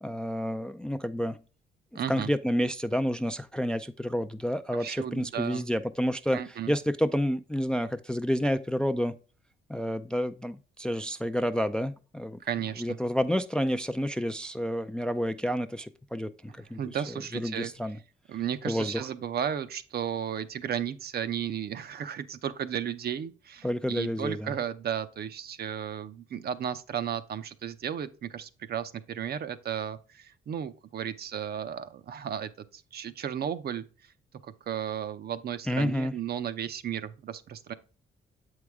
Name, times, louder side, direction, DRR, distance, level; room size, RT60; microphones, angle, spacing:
voice 1, 0.0-1.4 1.9-9.1 9.7-12.4 12.8-16.8 17.1-18.0 18.6-19.1 23.6-24.5 35.7-36.1, equal, 5° left, 0.3 m, -29 dB
voice 2, 1.9-2.3 4.8-5.7 6.3-6.7 12.4-13.0 16.5-17.7 18.3-33.8 34.4-37.7, right 9 dB, 50° right, 0.6 m, -34 dB
7.5 x 4.7 x 3.5 m
cardioid pair, 90°, 20 cm